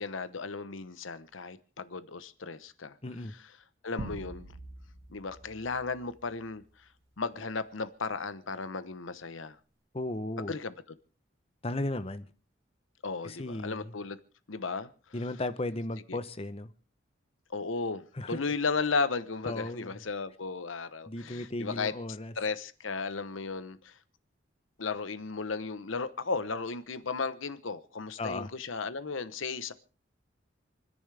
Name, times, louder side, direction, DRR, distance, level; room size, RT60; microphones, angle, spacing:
voice 1, 0.0-2.9 3.8-4.5 5.1-6.6 7.2-9.6 10.5-10.7 13.0-14.2 14.5-14.9 16.1-16.2 17.5-21.9 22.4-24.0 24.8-29.7, left 4 dB, 85° left, 1.0 m, -35 dB
voice 2, 3.0-3.3 9.9-10.5 11.6-12.3 13.2-13.9 15.1-16.7 18.1-18.4 19.4-20.0 21.1-22.3 28.2-28.5, left 2 dB, 30° left, 0.9 m, -35 dB
sound 1, 4.0-6.8, right 1 dB, 90° right, 2.7 m, -45 dB
28.5 x 10.5 x 3.4 m
head